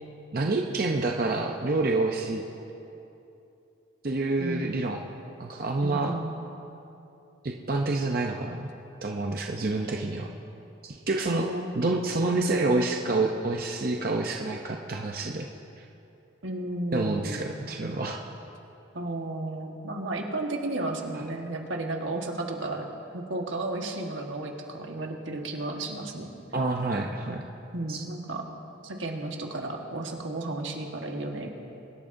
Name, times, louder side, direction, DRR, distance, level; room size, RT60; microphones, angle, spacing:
voice 1, 0.3-2.4 4.0-5.0 5.4-6.1 7.4-8.7 9.0-10.3 10.8-11.5 11.7-15.5 15.8-15.9 16.9-18.2 26.5-27.5 27.9-28.0, right 2 dB, 50° right, 1 dB, 0.6 m, -28 dB
voice 2, 4.4-4.8 5.8-6.3 11.3-11.7 16.4-17.5 18.9-22.9 23.1-26.3 27.7-28.4 28.8-31.5, right 2 dB, 85° right, 2 dB, 1.5 m, -33 dB
23.5 x 12.0 x 2.6 m, 2.8 s
head